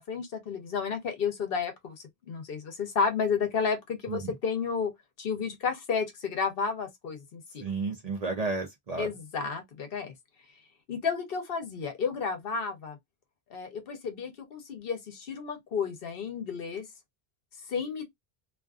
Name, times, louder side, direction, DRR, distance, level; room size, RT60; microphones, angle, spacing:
voice 1, 0.0-4.9 5.2-7.7 9.0-10.1 10.9-13.0 13.5-16.9 17.7-18.0, left 5 dB, 65° left, 0.9 m, -32 dB
voice 2, 7.6-9.1, right 3 dB, 45° right, 0.6 m, -32 dB
2.5 x 2.4 x 2.3 m
omnidirectional pair, 1.1 m